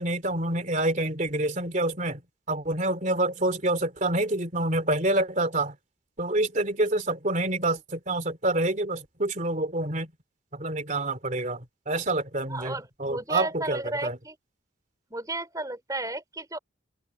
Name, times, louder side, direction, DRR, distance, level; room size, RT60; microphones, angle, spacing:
voice 1, 0.0-2.2 2.5-5.8 6.2-10.1 10.5-14.2, right 2 dB, 40° right, 3.0 m, -27 dB
voice 2, 12.5-14.3 15.1-16.6, right 2 dB, 20° right, 4.4 m, -33 dB
open air
head